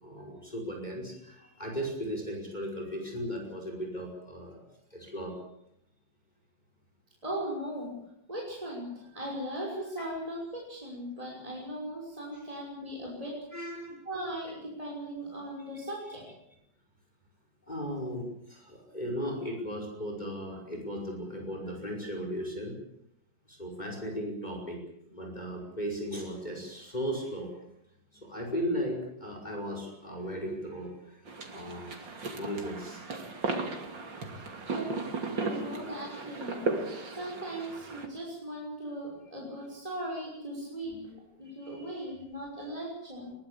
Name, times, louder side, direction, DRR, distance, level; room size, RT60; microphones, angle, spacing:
voice 1, 0.0-4.6 4.9-5.4 13.5-14.1 17.7-22.8 23.5-24.8 25.1-27.5 28.1-33.1 35.3-35.6 41.5-42.0, equal, 20° left, 1 dB, 5.6 m, -37 dB
voice 2, 7.2-8.0 8.3-13.4 14.1-16.3 34.7-35.1 35.4-43.3, right 1 dB, 20° right, -2 dB, 6.0 m, -38 dB
sound 1, 31.3-38.1, right 3 dB, 75° right, 3.5 m, -36 dB
22.0 x 20.0 x 8.6 m, 0.76 s
omnidirectional pair, 2.0 m